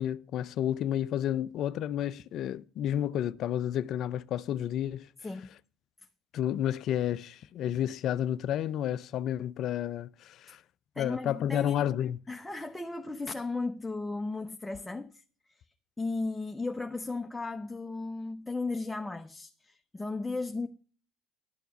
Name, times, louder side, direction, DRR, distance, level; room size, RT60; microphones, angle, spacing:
voice 1, 0.0-5.1 6.3-10.6 11.0-12.2, left 10 dB, 60° left, 0.5 m, -31 dB
voice 2, 11.0-11.8 12.3-15.2 16.0-20.7, left 3 dB, 10° left, 1.0 m, -35 dB
12.0 x 6.9 x 6.0 m
hypercardioid pair, 65°, 0 cm